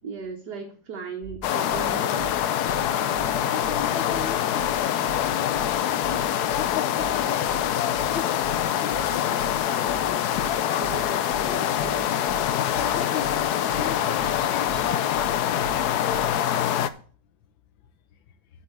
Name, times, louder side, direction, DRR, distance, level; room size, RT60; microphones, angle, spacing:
voice 1, 0.0-2.3 10.7-12.2, right 5 dB, 60° right, 1.7 m, -37 dB
sound 1, 1.2-1.4 1.7-1.9 2.2-2.3 2.7-2.8 3.1-3.3 3.6-3.8 4.1-4.3 4.6-4.7 5.1-5.2 5.5-5.7 6.0-6.2 6.5-6.7 7.0-7.1 7.5-7.6 7.9-8.1 8.4-8.6 8.9-9.1 9.4-9.5 9.9-10.0 10.3-10.5 10.8-11.0 11.3-11.5 11.8-11.9 12.3-12.4 12.7-12.9 13.2-13.4 13.7-13.9 14.2-14.3 14.7-14.8 15.1-15.3 15.6-15.8 16.1-16.3, right 8 dB, 25° right, 1.7 m, -40 dB
sound 2, 1.4-16.9, left 10 dB, 70° left, 1.0 m, -25 dB
voice 2, 2.8-3.2 3.5-6.2 6.5-8.4 8.8-9.5 12.8-16.7, left 8 dB, 85° left, 1.7 m, -36 dB
8.5 x 5.5 x 7.1 m
omnidirectional pair, 2.1 m